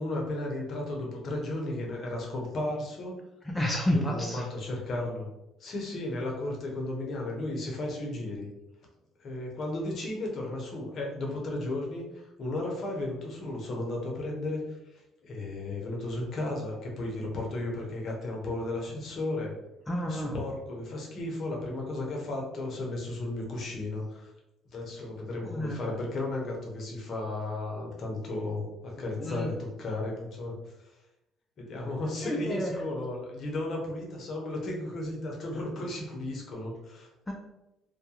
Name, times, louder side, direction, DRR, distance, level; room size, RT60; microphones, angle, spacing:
voice 1, 0.0-3.2 3.9-5.3 5.6-8.5 9.2-19.5 20.1-24.3 24.7-30.9 31.6-37.1, left 2 dB, 55° left, -1 dB, 0.7 m, -34 dB
voice 2, 3.5-4.5 19.9-20.3 25.4-25.9 29.2-29.5 32.2-32.8 37.3-37.4, left 1 dB, 10° left, 0 dB, 0.4 m, -30 dB
2.3 x 2.2 x 2.8 m, 0.92 s
supercardioid pair, 80°, 0 cm